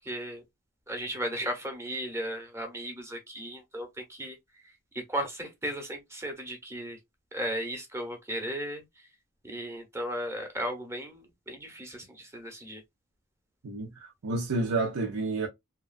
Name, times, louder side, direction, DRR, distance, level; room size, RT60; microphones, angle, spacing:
voice 1, 0.1-0.4 0.9-4.4 5.1-7.0 7.3-8.8 9.4-12.8, equal, 15° right, 0.8 m, -35 dB
voice 2, 13.6-15.5, right 3 dB, 80° right, 0.6 m, -30 dB
2.9 x 2.3 x 2.4 m
head